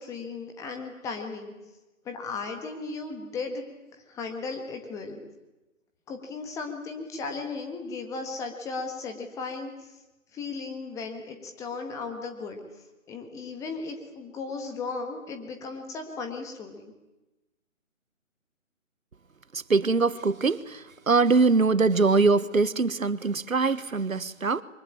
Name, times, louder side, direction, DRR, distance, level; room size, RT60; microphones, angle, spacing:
voice 1, 0.0-1.5 2.0-3.6 4.1-5.2 6.1-9.9 10.3-12.6 13.1-16.9, left 4 dB, 10° left, 1.6 m, -36 dB
voice 2, 19.5-24.6, right 4 dB, 80° right, 1.3 m, -23 dB
24.0 x 22.5 x 8.7 m
figure-of-eight pair, 150°, 40 cm